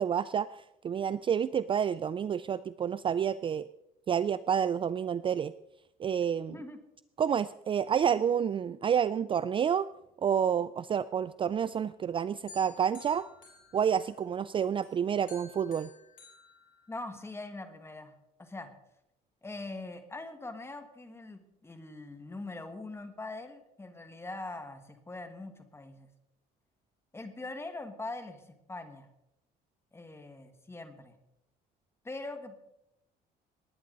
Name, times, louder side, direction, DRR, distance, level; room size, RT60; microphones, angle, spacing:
voice 1, 0.0-3.7 4.1-5.5 6.0-6.6 7.2-9.9 10.2-13.3 13.7-15.9, right 8 dB, 30° right, 16 dB, 0.4 m, -29 dB
sound 1, 12.5-14.4 14.8-17.4, left 3 dB, 50° left, 5.3 m, -54 dB
voice 2, 16.9-18.1 18.4-18.7 19.4-26.1 27.1-28.4 28.7-29.1 29.9-31.2 32.0-32.6, left 2 dB, 15° left, 7 dB, 1.7 m, -42 dB
19.5 x 9.6 x 4.0 m, 0.82 s
cardioid pair, 110°, 17 cm